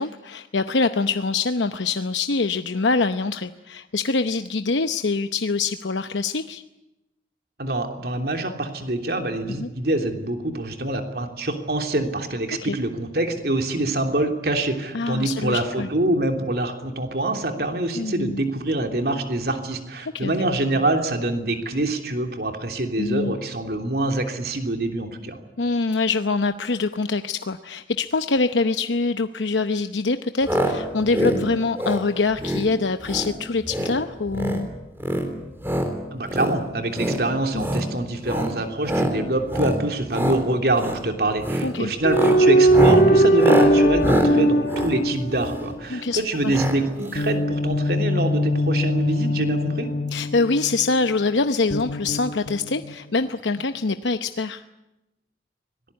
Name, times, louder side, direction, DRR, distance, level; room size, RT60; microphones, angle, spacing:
voice 1, 0.0-6.6 9.6-9.7 12.6-12.8 14.9-15.9 18.0-18.4 20.1-20.3 23.0-23.4 25.6-34.7 37.5-37.7 41.6-41.9 45.9-46.6 50.1-54.6, left 3 dB, 85° left, 9 dB, 0.8 m, -24 dB
voice 2, 7.6-25.4 36.1-49.9, right 2 dB, 55° right, 5 dB, 3.2 m, -25 dB
sound 1, 30.4-30.7 31.0-31.4 31.7-32.0 32.4-32.7 33.0-33.3 33.6-34.0 34.3-34.6 35.0-35.9 36.3-36.5 36.9-37.2 37.5-37.9 38.2-38.5 38.8-39.1 39.5-39.8 40.1-40.4 40.7-41.0 41.4-41.7 42.0-45.7 46.5-46.8 47.0-47.1 47.3-47.4, right 1 dB, 15° right, 3.7 m, -24 dB
sound 2, 42.0-45.7 47.2-50.9 51.7-52.9, right 1 dB, 55° left, 1.5 m, -20 dB
25.0 x 19.0 x 9.7 m, 0.94 s
head